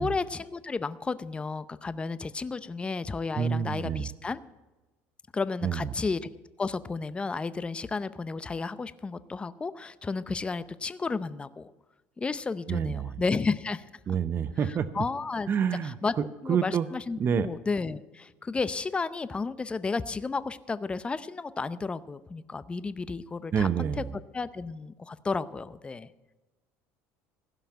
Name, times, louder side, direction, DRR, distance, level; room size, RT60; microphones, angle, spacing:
voice 1, 0.0-4.4 5.3-6.3 6.6-11.7 12.2-13.9 14.6-15.5 15.8-16.1 16.4-26.1, left 4 dB, 15° left, 15 dB, 0.6 m, -32 dB
voice 2, 3.4-4.1 5.6-5.9 12.7-13.2 14.1-15.0 15.5-16.0 16.5-16.9 17.2-17.5 23.5-24.1, right 7 dB, 35° right, 13 dB, 0.6 m, -28 dB
16.0 x 5.7 x 8.9 m, 1.1 s
cardioid pair, 120°, 6 cm